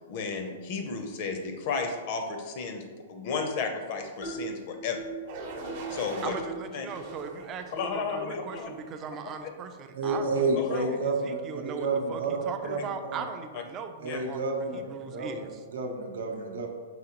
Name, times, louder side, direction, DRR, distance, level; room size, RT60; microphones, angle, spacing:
voice 1, 0.1-2.8 3.1-5.0 5.9-6.3 6.7-6.9 7.7-8.7 10.6-10.9 12.6-12.7 14.1-14.2, left 5 dB, 45° left, 5 dB, 0.5 m, -33 dB
sound 1, 4.2-4.5 4.9-5.2 5.6-5.9 6.3-6.6 7.0-7.1 7.8-7.9 8.5-8.6 9.3-9.4 10.0-10.2, right 4 dB, 85° left, 1.0 m, -39 dB
sound 2, 5.3-6.3 6.9-7.9 8.5-8.9, right 2 dB, 50° right, 0.7 m, -41 dB
voice 2, 6.2-15.6, right 6 dB, 25° right, 7 dB, 0.3 m, -39 dB
voice 3, 9.9-12.8 13.1-13.2 14.0-16.7, right 3 dB, 85° right, 3 dB, 0.7 m, -30 dB
4.8 x 3.3 x 2.9 m, 1.5 s
hypercardioid pair, 150°, 0 cm